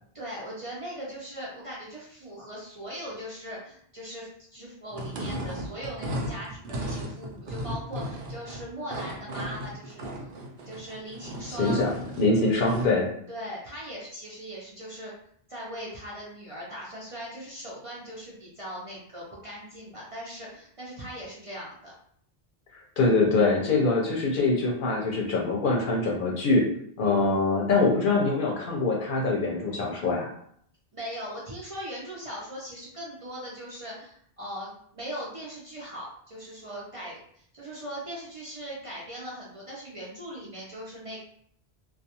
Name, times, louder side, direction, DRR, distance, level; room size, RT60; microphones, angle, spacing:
voice 1, 0.1-10.1 10.7-11.8 13.3-15.1 15.5-21.9 30.9-41.2, equal, 45° right, -5 dB, 0.5 m, -39 dB
sound 1, 4.9-13.0, equal, 75° right, 0.8 m, -36 dB
voice 2, 11.5-11.9 12.2-13.1 23.0-26.6 27.0-30.3, left 3 dB, 60° left, -1 dB, 0.7 m, -24 dB
2.3 x 2.2 x 2.8 m, 0.66 s
omnidirectional pair, 1.0 m